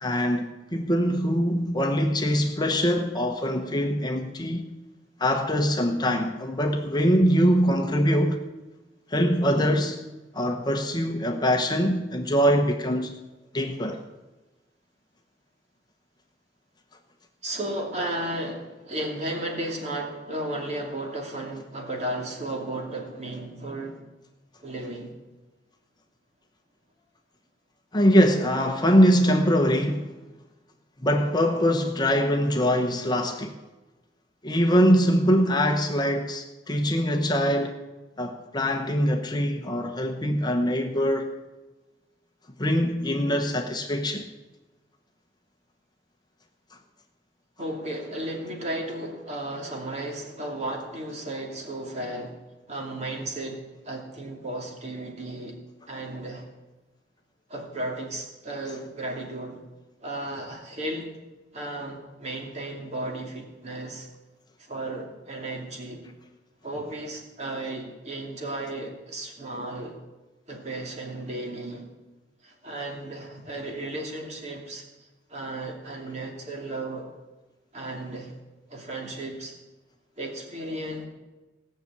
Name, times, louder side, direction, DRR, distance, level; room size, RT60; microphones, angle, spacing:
voice 1, 0.0-4.7 5.2-8.4 9.1-10.0 10.3-13.1 13.5-14.0 27.9-30.1 31.0-33.5 34.4-37.8 38.2-41.3 42.6-44.3, equal, 25° left, 1.0 m, -23 dB
voice 2, 17.4-24.0 24.6-25.1 47.6-52.4 52.7-55.6 55.9-56.5 57.5-59.6 60.0-61.1 61.5-64.1 64.6-66.0 66.6-70.0 70.5-71.9 72.4-77.1 77.7-78.3 78.7-79.5 80.2-81.1, right 1 dB, 40° right, 2.7 m, -34 dB
17.5 x 6.7 x 8.4 m
head